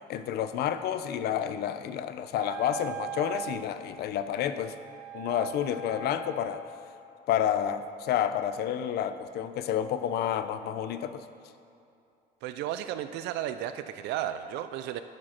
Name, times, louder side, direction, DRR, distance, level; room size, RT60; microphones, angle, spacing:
voice 1, 0.1-4.7 5.1-6.6 7.3-11.2, left 9 dB, 75° left, 11 dB, 0.6 m, -30 dB
Wind instrument woodwind instrument, 2.3-6.9, right 6 dB, 45° right, 1.1 m, -41 dB
voice 2, 12.4-15.0, right 11 dB, 90° right, 10 dB, 0.4 m, -34 dB
12.0 x 5.1 x 5.8 m, 2.6 s
cardioid pair, 110°, 17 cm